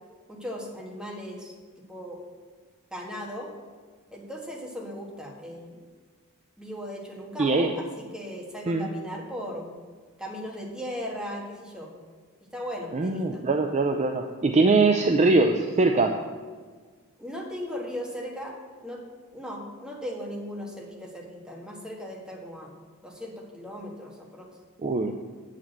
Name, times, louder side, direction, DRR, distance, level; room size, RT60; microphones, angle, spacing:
voice 1, 0.3-1.5 1.9-2.2 2.9-3.5 4.1-5.8 6.6-9.8 10.2-11.9 12.5-13.4 17.2-18.5 18.8-19.0 19.3-22.7 23.0-24.5, equal, 5° right, -2 dB, 1.6 m, -37 dB
voice 2, 7.4-7.7 8.7-8.9 12.9-16.2 24.8-25.1, right 3 dB, 30° right, 5 dB, 0.4 m, -22 dB
8.3 x 5.0 x 7.5 m, 1.5 s
head